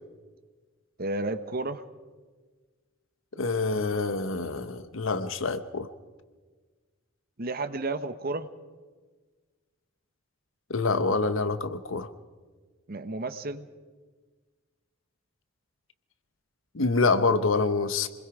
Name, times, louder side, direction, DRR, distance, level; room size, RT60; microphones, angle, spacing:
voice 1, 1.0-1.8 7.4-8.5 12.9-13.7, right 2 dB, 45° right, 11 dB, 1.0 m, -32 dB
voice 2, 3.4-5.9 10.7-12.1 16.7-18.1, left 3 dB, 70° left, 12 dB, 1.0 m, -26 dB
27.5 x 21.0 x 4.9 m, 1.4 s
head